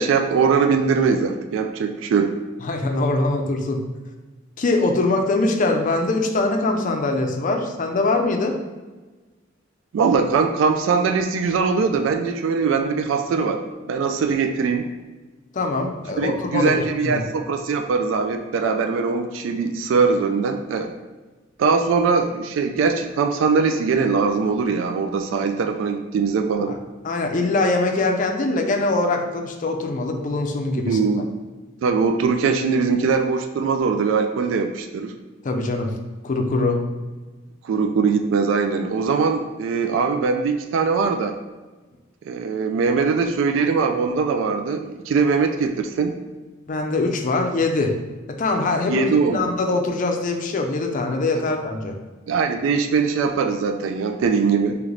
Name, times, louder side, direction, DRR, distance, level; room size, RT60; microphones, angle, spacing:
voice 1, 0.0-2.3 9.9-13.6 13.9-14.9 16.2-20.9 21.6-26.8 30.9-31.3 31.8-35.1 37.6-41.4 42.2-46.2 48.9-49.4 51.3-51.4 52.3-54.7, right 5 dB, 75° right, 5 dB, 0.3 m, -21 dB
voice 2, 2.6-3.8 4.6-8.6 15.5-17.2 26.7-26.8 27.0-31.0 35.4-35.9 36.2-36.8 46.7-48.0 48.4-52.0, left 2 dB, 40° left, 3 dB, 0.4 m, -22 dB
3.2 x 3.0 x 3.7 m, 1.3 s
head